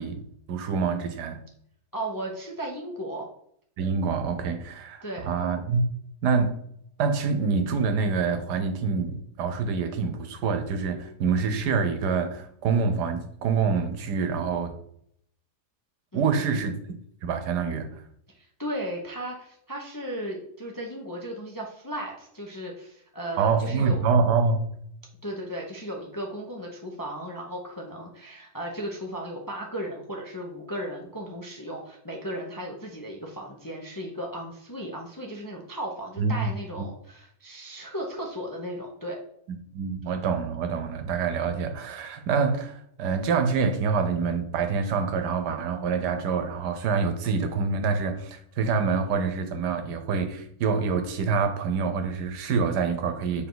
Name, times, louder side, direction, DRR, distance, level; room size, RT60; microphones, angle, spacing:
voice 1, 0.0-1.4 3.8-5.8 6.2-6.6 7.0-14.7 16.1-16.7 17.2-17.9 23.4-24.6 36.2-36.5 39.7-53.5, right 5 dB, 85° right, 7 dB, 1.4 m, -26 dB
voice 2, 1.9-3.3 5.0-5.3 16.1-16.6 18.4-24.0 25.2-39.2, right 1 dB, 20° left, 0 dB, 0.5 m, -36 dB
7.1 x 3.5 x 4.0 m, 0.69 s
omnidirectional pair, 1.7 m